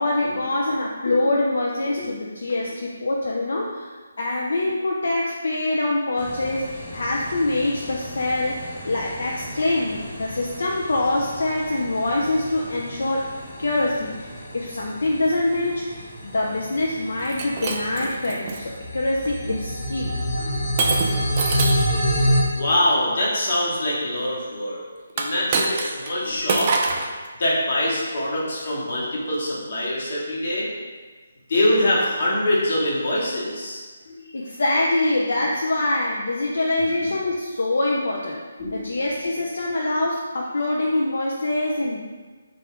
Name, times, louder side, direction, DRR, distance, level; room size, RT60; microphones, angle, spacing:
voice 1, 0.0-13.3 13.6-20.2 34.3-38.4 38.7-42.0, left 2 dB, 75° left, -2 dB, 0.4 m, -24 dB
sound 1, 6.2-22.4, equal, 25° left, 0.6 m, -29 dB
Shatter, 17.2-18.6 19.3-19.6 20.8-21.9 25.1-26.1 26.5-27.1, right 4 dB, 30° right, 0.3 m, -25 dB
voice 2, 22.5-24.8 25.2-26.9 27.4-30.7 31.5-34.2 38.6-38.8, left 1 dB, 50° left, -5 dB, 1.1 m, -24 dB
3.5 x 2.4 x 3.5 m, 1.4 s
hypercardioid pair, 165°, 0 cm